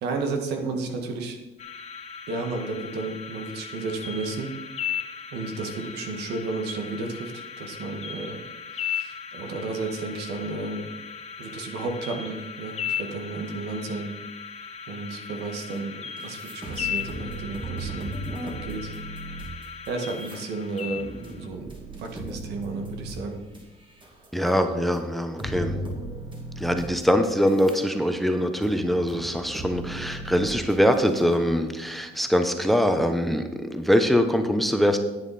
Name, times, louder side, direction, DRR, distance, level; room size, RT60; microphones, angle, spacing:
voice 1, 0.0-1.4 2.3-4.5 5.3-8.4 8.7-10.9 11.4-14.1 14.9-18.1 18.4-18.9 19.9-21.7 22.0-23.4, right 3 dB, 80° right, 5 dB, 1.7 m, -32 dB
sound 1, 1.6-21.5, left 7 dB, 40° left, 1.3 m, -37 dB
sound 2, 15.7-15.8 16.2-24.5 24.9-25.0 25.4-27.8 28.2-31.4, right 1 dB, 30° right, 2.4 m, -37 dB
voice 2, 24.3-25.8 26.6-33.4 33.7-35.0, equal, ahead, 7 dB, 0.9 m, -23 dB
10.5 x 9.1 x 4.2 m, 1.1 s
cardioid pair, 110°, 17 cm